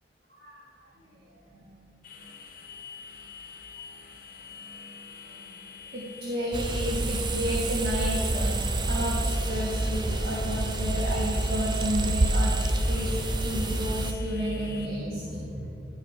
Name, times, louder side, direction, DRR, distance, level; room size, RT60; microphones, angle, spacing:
sound 1, 2.0-14.9, left 6 dB, 45° left, 0.7 m, -46 dB
voice 1, 5.9-12.6 12.9-13.1 13.4-15.7, equal, 55° right, -6 dB, 1.4 m, -32 dB
sound 2, 6.5-14.1, right 2 dB, 25° right, 0.4 m, -27 dB
11.5 x 4.9 x 4.6 m, 3.0 s
head